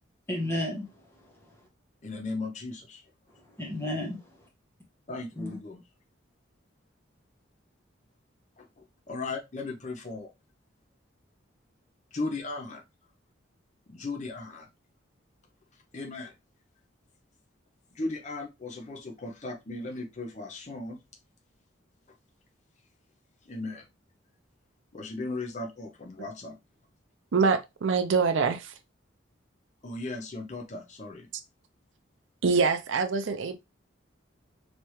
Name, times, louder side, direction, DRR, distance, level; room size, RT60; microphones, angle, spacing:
voice 1, 0.3-1.7 3.3-4.5 5.3-5.6, left 1 dB, 10° left, 1.0 m, -34 dB
voice 2, 2.0-3.0 5.1-5.8 8.6-10.3 12.1-12.8 13.9-14.7 15.9-16.3 17.9-21.0 23.5-23.8 24.9-26.6 29.8-31.3, left 3 dB, 35° left, 0.6 m, -37 dB
voice 3, 27.3-28.7 32.4-33.6, right 5 dB, 75° right, 0.5 m, -25 dB
3.3 x 3.1 x 3.0 m
head